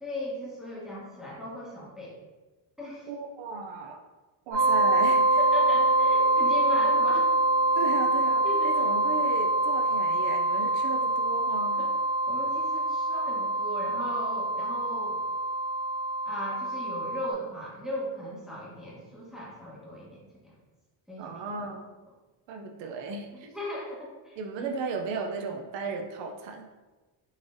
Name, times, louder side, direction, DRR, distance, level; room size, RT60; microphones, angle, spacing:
voice 1, 0.0-2.2 2.8-3.1 5.4-7.3 8.4-8.7 11.7-11.9 12.3-15.2 16.3-20.5 21.1-21.7 23.3-24.7, left 1 dB, ahead, -7 dB, 1.0 m, -37 dB
voice 2, 3.1-4.0 4.5-5.4 7.8-11.8 21.2-21.9 22.5-23.5 24.4-26.7, right 4 dB, 65° right, 2 dB, 0.5 m, -35 dB
sound 1, 4.5-17.3, right 2 dB, 35° right, 1.2 m, -25 dB
3.9 x 3.2 x 2.5 m, 1.2 s
cardioid pair, 135°, 49 cm